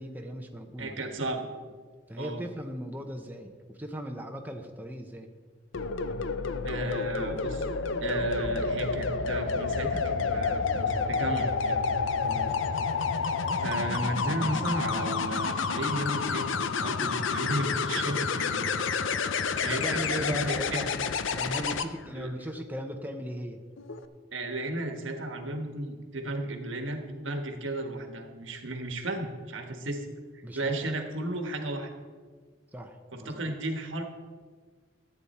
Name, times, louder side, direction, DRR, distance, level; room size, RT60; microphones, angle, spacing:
voice 1, 0.0-1.4 2.1-5.3 12.2-12.6 19.7-23.6 30.4-30.7 32.7-33.4, equal, 10° right, 3 dB, 0.7 m, -38 dB
voice 2, 0.8-1.4 2.2-2.4 6.6-7.7 8.0-11.8 13.6-18.7 19.6-21.0 22.1-22.3 24.3-30.1 30.5-31.9 33.1-34.0, right 1 dB, 80° right, 5 dB, 1.4 m, -34 dB
sound 1, 5.7-21.9 23.8-24.0, left 5 dB, 80° left, 0.6 m, -29 dB
13.5 x 8.8 x 4.2 m, 1.5 s
head